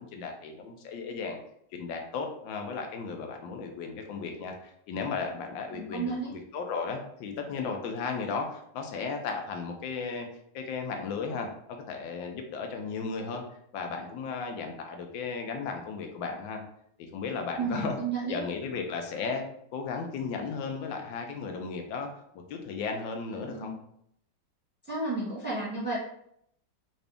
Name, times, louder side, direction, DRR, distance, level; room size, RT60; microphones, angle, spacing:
voice 1, 0.0-1.4 1.7-10.3 10.5-13.4 13.7-16.6 17.0-18.0 18.2-19.4 19.7-22.1 22.5-23.7, left 5 dB, 85° left, 4 dB, 1.4 m, -35 dB
voice 2, 5.7-6.3 17.6-18.4 23.4-23.8 24.9-26.0, right 3 dB, 5° right, -6 dB, 0.9 m, -32 dB
3.9 x 2.6 x 3.4 m, 0.71 s
omnidirectional pair, 2.0 m